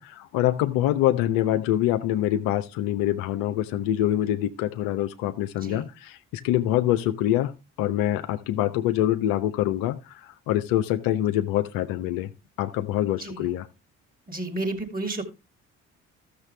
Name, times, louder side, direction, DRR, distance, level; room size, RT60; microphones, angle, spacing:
voice 1, 0.0-7.5 7.8-12.3 12.6-13.7, left 13 dB, 65° left, 0.8 m, -25 dB
voice 2, 14.3-15.2, right 2 dB, 25° right, 2.5 m, -31 dB
13.5 x 6.8 x 3.4 m
figure-of-eight pair, 45°, 37 cm